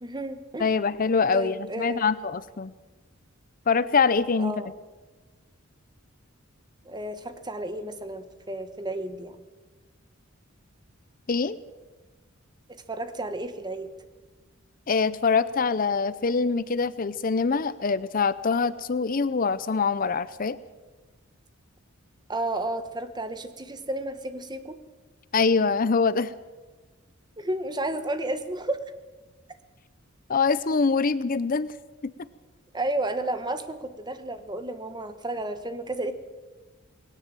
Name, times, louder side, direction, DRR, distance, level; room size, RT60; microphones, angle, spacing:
voice 1, 0.0-0.7 1.3-2.1 4.4-4.8 6.8-9.4 12.7-13.9 22.3-24.8 27.4-28.8 32.7-36.1, right 2 dB, 20° right, 10 dB, 1.3 m, -32 dB
voice 2, 0.6-2.7 3.7-4.5 11.3-11.6 14.9-20.6 25.3-26.3 30.3-31.7 32.0-32.1, left 5 dB, 40° left, 16 dB, 0.6 m, -24 dB
19.5 x 17.5 x 7.7 m, 1.3 s
head